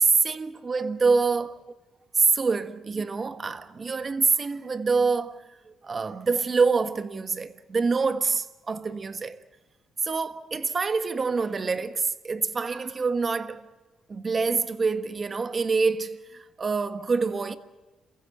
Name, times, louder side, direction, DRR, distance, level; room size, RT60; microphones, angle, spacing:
voice 1, 0.0-1.5 2.1-9.4 10.0-13.7 14.1-17.6, right 4 dB, 35° right, 1.4 m, -26 dB
28.0 x 15.5 x 9.2 m
cardioid pair, 90°, 0 cm